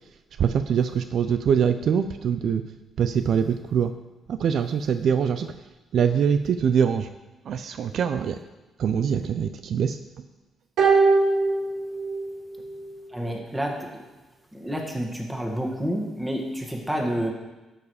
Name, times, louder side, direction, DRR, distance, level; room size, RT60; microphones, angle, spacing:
voice 1, 0.4-2.6 3.0-3.9 4.4-5.5 5.9-7.1 7.5-8.4 8.8-10.0, right 7 dB, 65° right, 9 dB, 0.4 m, -23 dB
sound 1, 10.8-12.4 12.7-12.8, right 3 dB, 80° right, 3.7 m, -21 dB
voice 2, 13.1-13.9 14.5-17.3, equal, 10° right, 0 dB, 1.8 m, -29 dB
12.5 x 4.9 x 4.8 m, 1.1 s
cardioid pair, 90°, 0 cm